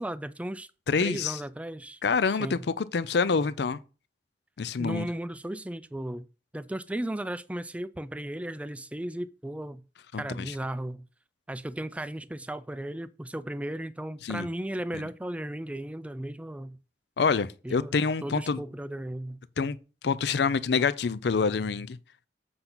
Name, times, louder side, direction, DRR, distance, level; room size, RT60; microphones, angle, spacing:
voice 1, 0.0-0.7 1.0-2.0 2.4-2.7 4.8-6.3 6.5-9.8 10.2-11.1 11.5-16.8 17.6-18.0 18.2-19.4, right 1 dB, 10° right, 0.4 m, -35 dB
voice 2, 0.9-1.4 2.0-3.8 4.6-5.1 10.1-10.5 14.2-14.5 14.9-15.0 17.2-18.6 19.6-19.8 20.0-22.0, left 5 dB, 65° left, 0.5 m, -27 dB
7.9 x 5.8 x 3.9 m
head